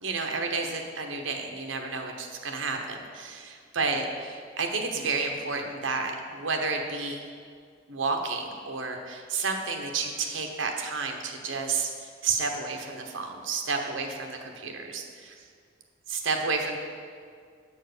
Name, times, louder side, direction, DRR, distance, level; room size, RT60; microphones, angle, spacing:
voice 1, 0.0-7.2 7.9-15.4 16.1-16.8, right 4 dB, 80° right, 3 dB, 0.9 m, -31 dB
8.3 x 4.5 x 6.6 m, 2.1 s
head